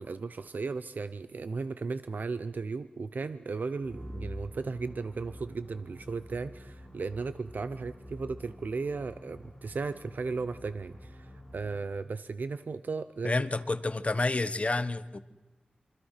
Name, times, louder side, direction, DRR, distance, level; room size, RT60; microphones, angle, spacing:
voice 1, 0.0-13.3, right 4 dB, 75° right, 13 dB, 0.8 m, -36 dB
sound 1, 3.8-12.0, equal, ahead, 7.5 m, -47 dB
voice 2, 13.2-15.2, left 2 dB, 45° left, 13 dB, 1.3 m, -29 dB
27.0 x 24.5 x 5.9 m, 1.1 s
wide cardioid pair, 65°, 3 cm